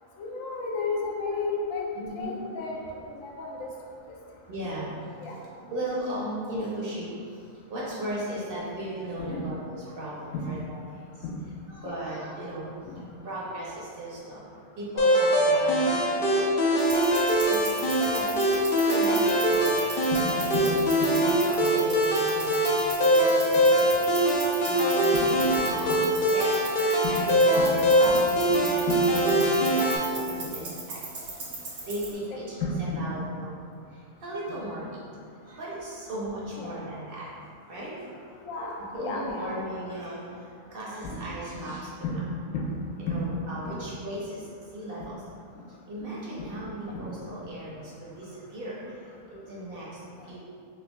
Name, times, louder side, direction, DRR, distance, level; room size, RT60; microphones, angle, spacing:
voice 1, 0.2-1.8 2.1-2.8 3.1-3.7 5.2-5.4 9.2-9.4 10.3-10.5 11.2-11.4 11.8-12.0 12.8-13.0 20.1-20.3 20.5-21.2 23.6-23.9 25.1-25.3 25.5-26.1 27.0-27.3 27.6-27.8 28.1-28.2 28.5-28.6 28.9-29.0 29.3-29.4 30.4-30.6 32.6-33.2 36.6-36.7 38.4-39.6 41.0-41.3 41.6-41.7 42.0-42.2 43.1-43.2 43.6-43.8 46.5-46.6 46.9-47.1, left 3 dB, 85° left, -2 dB, 1.0 m, -33 dB
voice 2, 1.9-2.4 4.5-11.2 11.7-14.5 14.8-20.0 20.3-25.9 26.3-28.8 29.1-31.5 31.8-33.6 33.9-35.0 35.3-37.3 37.7-38.3 38.8-42.2 43.0-45.2 45.9-50.4, right 1 dB, 55° right, -6 dB, 0.7 m, -37 dB
sound 1, 15.0-30.0, equal, 60° left, 0.7 m, -23 dB
sound 2, 16.8-32.1, right 3 dB, 90° right, 1.2 m, -39 dB
4.7 x 2.3 x 2.2 m, 2.3 s
omnidirectional pair, 1.3 m